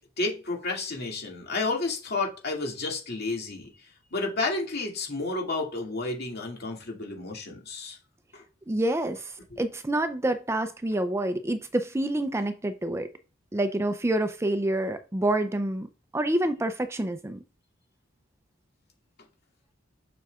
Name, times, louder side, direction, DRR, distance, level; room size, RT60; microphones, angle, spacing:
voice 1, 0.2-3.7 4.1-8.0 8.3-8.4 9.5-9.6, left 3 dB, 50° left, 2.2 m, -31 dB
voice 2, 8.7-9.3 9.6-13.1 13.5-15.9 16.1-17.4, right 1 dB, 15° right, 0.5 m, -27 dB
7.1 x 6.1 x 2.4 m
head